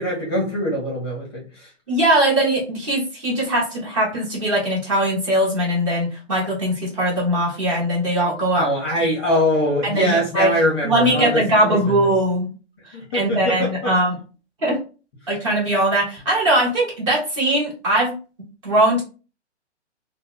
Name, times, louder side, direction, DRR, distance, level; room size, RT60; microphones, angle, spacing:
voice 1, 0.0-1.7 8.5-12.0 12.9-13.9, equal, 20° left, -2 dB, 0.6 m, -23 dB
voice 2, 1.9-8.7 9.8-10.5 10.8-12.5 12.8-14.1 14.6-14.8 15.3-18.1 18.6-19.0, right 1 dB, 25° right, -3 dB, 0.9 m, -20 dB
2.1 x 2.0 x 3.8 m, 0.34 s
hypercardioid pair, 160°, 35 cm